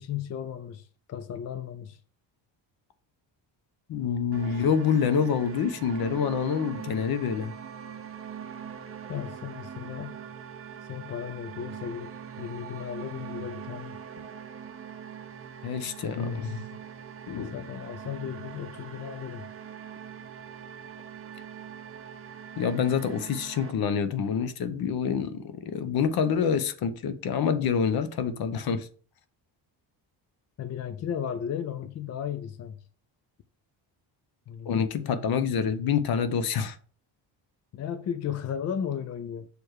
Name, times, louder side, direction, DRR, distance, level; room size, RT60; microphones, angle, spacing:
voice 1, 0.0-2.0 6.2-6.4 9.1-10.2 10.9-14.2 17.5-19.5 30.6-32.8 34.5-35.2 37.7-39.5, left 8 dB, 40° left, 0.4 m, -35 dB
voice 2, 3.9-7.5 15.6-16.6 17.3-17.6 22.6-28.9 34.7-36.8, left 7 dB, 55° left, 0.8 m, -27 dB
sound 1, 4.3-23.7, right 8 dB, 30° right, 0.6 m, -42 dB
6.9 x 3.2 x 4.6 m
cardioid pair, 155°, 45 cm